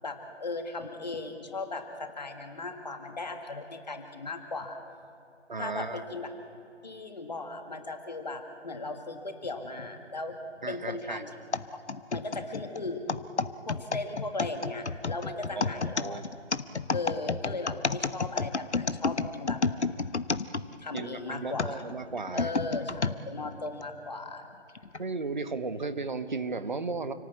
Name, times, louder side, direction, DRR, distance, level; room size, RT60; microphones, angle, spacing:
voice 1, 0.0-4.8 5.6-6.3 6.8-10.4 10.7-11.3 11.7-11.8 12.1-13.0 13.7-16.2 16.9-19.6 20.8-21.8 22.3-24.5, left 3 dB, 35° left, 5 dB, 1.9 m, -37 dB
voice 2, 5.5-6.0 10.6-11.2 15.5-16.3 20.9-22.5 25.0-27.1, right 4 dB, 40° right, 10 dB, 1.3 m, -35 dB
sound 1, 11.5-21.1 21.6-23.2 23.8-23.9 24.8-25.0, left 4 dB, 65° left, 1.1 m, -30 dB
29.5 x 17.5 x 8.4 m, 2.6 s
figure-of-eight pair, 160°, 36 cm